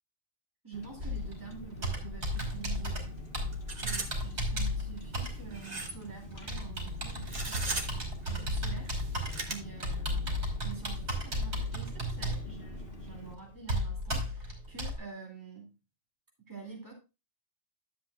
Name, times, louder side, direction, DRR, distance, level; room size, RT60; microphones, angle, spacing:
voice 1, 0.6-3.2 3.8-10.3 10.6-15.7 16.5-16.9, right 5 dB, 15° right, -2 dB, 2.7 m, -47 dB
Car, 0.7-13.3, left 1 dB, 55° left, 1.6 m, -47 dB
Computer keyboard, 1.0-15.0, equal, 80° right, 3.1 m, -35 dB
sound 1, 2.4-2.5 2.8-2.9 3.5-4.1 4.5-4.6 5.5-6.0 7.2-8.0 8.9-9.5, right 2 dB, 40° right, 1.4 m, -37 dB
12.0 x 7.7 x 2.4 m, 0.28 s
omnidirectional pair, 1.1 m